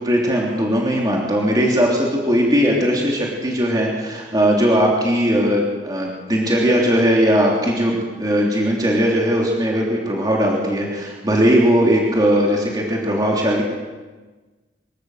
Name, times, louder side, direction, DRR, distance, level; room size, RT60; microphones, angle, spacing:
voice 1, 0.0-13.6, equal, 20° right, -2 dB, 3.2 m, -18 dB
25.0 x 13.5 x 7.9 m, 1.3 s
head